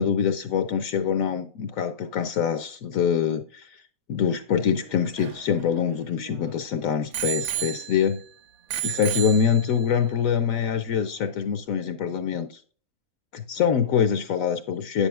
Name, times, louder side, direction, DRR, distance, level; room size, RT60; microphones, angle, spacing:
voice 1, 0.0-3.8 4.1-8.2 8.8-12.6 13.3-15.1, left 7 dB, 70° left, 0.9 m, -24 dB
Bicycle bell, 4.8-6.5 7.1-8.3 8.7-10.0 10.7-10.8, right 11 dB, 70° right, 1.1 m, -32 dB
7.8 x 6.9 x 2.4 m
omnidirectional pair, 1.6 m